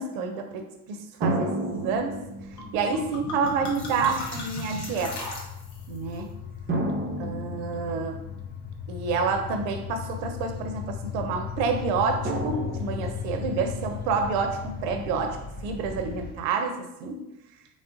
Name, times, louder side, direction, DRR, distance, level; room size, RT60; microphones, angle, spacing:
voice 1, 0.0-2.2 2.7-5.2 5.9-6.4 7.2-8.2 8.9-15.4 15.6-17.2, right 5 dB, 65° right, 5 dB, 0.7 m, -28 dB
sound 1, 1.2-3.0 3.9-4.0 6.7-8.4 12.2-13.6, right 2 dB, 25° right, 0.6 m, -31 dB
sound 2, 1.7-16.3, left 7 dB, 20° left, 0.4 m, -37 dB
sound 3, 2.6-2.7 2.9-6.0, left 1 dB, 55° left, 1.1 m, -37 dB
3.6 x 2.1 x 3.6 m, 0.90 s
hypercardioid pair, 55°, 48 cm